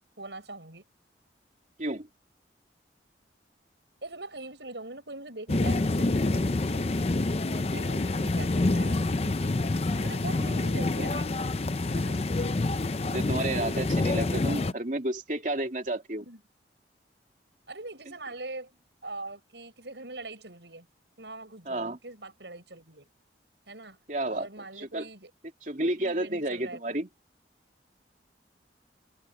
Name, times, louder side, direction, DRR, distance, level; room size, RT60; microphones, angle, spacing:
voice 1, 0.2-0.8 4.0-7.1 7.7-9.7 10.0-11.5 11.8-12.3 16.2-16.4 17.7-20.9 21.2-23.1 23.7-25.3 25.8-26.8, right 2 dB, 75° right, 7.5 m, -43 dB
sound 1, 5.5-14.7, left 2 dB, 35° left, 0.6 m, -27 dB
voice 2, 12.3-12.8 13.1-16.2 21.7-22.0 24.1-24.5 24.8-25.1 25.6-27.1, right 1 dB, 45° right, 2.9 m, -32 dB
head